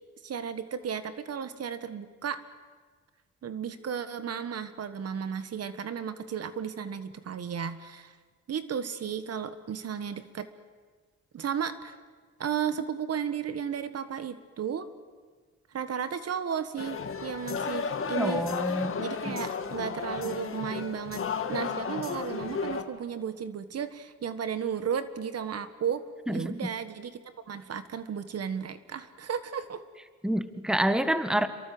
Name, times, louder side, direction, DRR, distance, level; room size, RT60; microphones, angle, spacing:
voice 1, 0.2-2.4 3.4-8.2 8.5-10.5 11.3-11.9 12.4-14.9 15.7-18.4 19.0-29.8, right 7 dB, 55° right, 12 dB, 1.5 m, -34 dB
sound 1, 16.8-22.8, left 5 dB, 45° left, 2.3 m, -33 dB
voice 2, 18.2-18.9 19.2-19.3 26.3-26.7 30.2-31.5, right 1 dB, ahead, 11 dB, 1.6 m, -27 dB
27.5 x 23.0 x 7.9 m, 1.5 s
cardioid pair, 90°, 30 cm